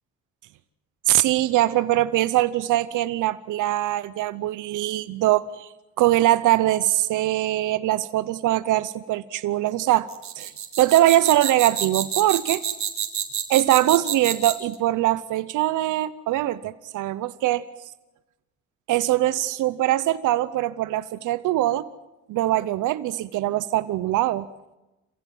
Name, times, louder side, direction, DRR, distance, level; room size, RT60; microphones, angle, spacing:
voice 1, 1.1-5.7 6.0-10.1 10.4-10.5 10.8-12.6 13.5-17.6 18.9-21.9 22.3-24.5, right 15 dB, 85° right, 14 dB, 0.8 m, -22 dB
sound 1, 10.1-14.7, right 9 dB, 65° right, 3.6 m, -28 dB
27.5 x 15.5 x 9.4 m, 1.0 s
cardioid pair, 90°, 30 cm